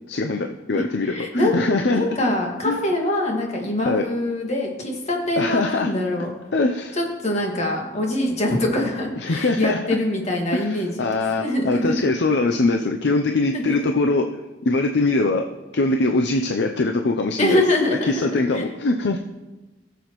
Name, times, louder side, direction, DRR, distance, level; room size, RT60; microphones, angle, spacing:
voice 1, 0.1-2.0 2.7-2.8 3.9-4.0 5.4-5.9 6.5-7.0 9.2-9.8 10.5-14.3 14.6-15.5 15.7-17.6 18.0-19.3, left 3 dB, 70° left, 4 dB, 0.6 m, -22 dB
voice 2, 0.7-1.6 1.9-6.3 6.9-11.1 11.4-12.1 13.5-13.9 17.4-18.3 18.5-18.6, left 1 dB, 40° left, 0 dB, 1.9 m, -24 dB
17.0 x 7.1 x 3.1 m, 1.1 s
head